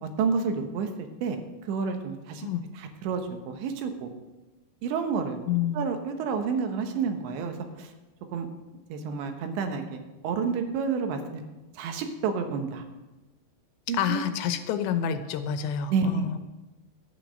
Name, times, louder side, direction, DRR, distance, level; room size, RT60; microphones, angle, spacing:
voice 1, 0.0-2.5 2.8-4.1 4.8-5.4 5.7-7.9 8.3-8.5 8.9-11.4 11.8-12.8 13.9-14.2 15.9-16.3, right 5 dB, 85° right, 6 dB, 3.4 m, -30 dB
voice 2, 5.5-5.9 13.9-16.4, left 8 dB, 80° left, 9 dB, 3.0 m, -28 dB
11.5 x 9.2 x 6.4 m, 1.1 s
omnidirectional pair, 5.1 m